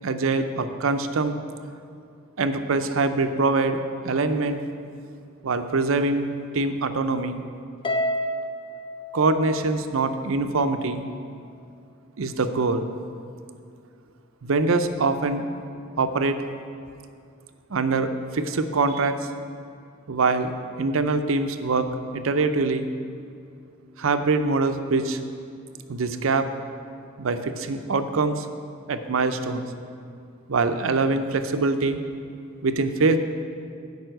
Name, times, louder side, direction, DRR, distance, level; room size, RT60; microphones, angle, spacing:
voice 1, 0.0-1.4 2.4-4.6 5.4-6.3 6.5-7.4 9.1-11.0 12.2-12.8 14.4-15.5 16.0-16.4 17.7-19.2 20.1-20.5 20.8-22.9 24.0-25.2 25.9-26.5 27.2-28.5 28.9-29.7 30.5-32.0 32.6-33.2, right 3 dB, 80° right, 9 dB, 0.6 m, -24 dB
Harp, 7.8-10.3, equal, 25° left, 0.7 m, -30 dB
9.2 x 5.4 x 7.7 m, 2.3 s
head